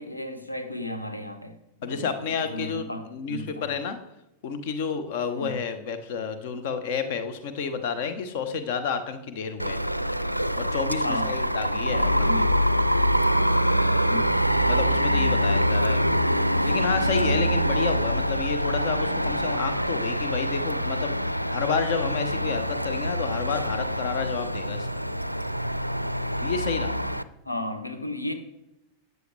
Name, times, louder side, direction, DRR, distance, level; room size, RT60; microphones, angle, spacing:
voice 1, 0.0-2.1 2.4-3.7 5.4-5.5 11.0-11.4 11.9-12.4 14.1-14.2 27.4-28.3, left 1 dB, 85° left, 7 dB, 1.0 m, -34 dB
voice 2, 1.8-4.0 4.4-9.8 10.5-12.1 14.7-16.0 16.7-24.9 26.4-27.0, left 6 dB, 50° left, 10 dB, 1.0 m, -30 dB
sound 1, 9.6-27.2, equal, 90° right, 0.4 m, -25 dB
13.0 x 9.3 x 3.4 m, 0.88 s
figure-of-eight pair, 90°, 0 cm